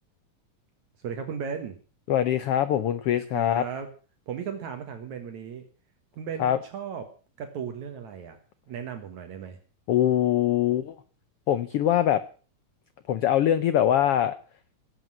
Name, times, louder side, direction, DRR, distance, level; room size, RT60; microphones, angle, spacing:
voice 1, 1.0-1.8 3.3-3.9 4.3-5.6 6.2-7.0 7.4-8.4 8.7-9.6, right 7 dB, 65° right, 7 dB, 2.7 m, -35 dB
voice 2, 2.1-3.6 6.4-6.6 9.9-10.9 11.5-12.2 13.1-14.3, left 11 dB, 85° left, 13 dB, 1.3 m, -23 dB
17.0 x 8.1 x 7.6 m, 0.39 s
omnidirectional pair, 3.7 m